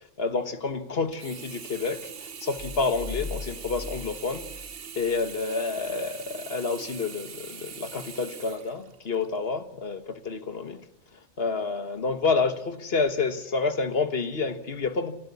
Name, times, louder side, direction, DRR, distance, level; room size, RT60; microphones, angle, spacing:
voice 1, 0.2-2.1 2.4-4.4 4.9-10.8 11.4-15.1, left 4 dB, 60° left, 1.6 m, -29 dB
Sink (filling or washing), 1.1-9.4 9.9-10.0, right 7 dB, 55° right, 1.1 m, -42 dB
sound 1, 2.6-5.4, left 4 dB, 25° left, 2.4 m, -39 dB
28.5 x 13.0 x 8.3 m
omnidirectional pair, 1.2 m